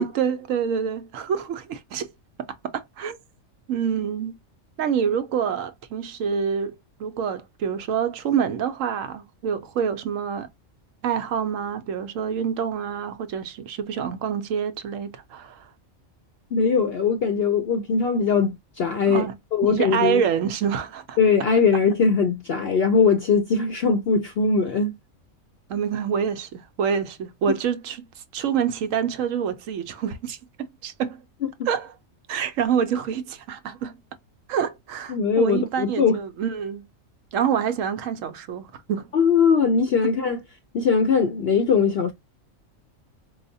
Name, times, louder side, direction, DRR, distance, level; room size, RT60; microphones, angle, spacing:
voice 1, 0.0-2.1 2.4-3.2 3.7-4.4 4.8-6.7 7.0-10.5 11.0-15.7 19.1-19.4 19.6-21.2 25.7-28.1 28.3-31.2 31.7-31.9 32.3-34.0 34.5-36.8 37.3-39.1, right 7 dB, 75° right, 1.0 m, -27 dB
voice 2, 16.5-19.3 19.5-20.2 21.2-24.9 35.1-36.2 39.1-40.4 40.7-42.1, left 5 dB, 60° left, 0.7 m, -20 dB
4.7 x 2.1 x 2.6 m
omnidirectional pair, 1.4 m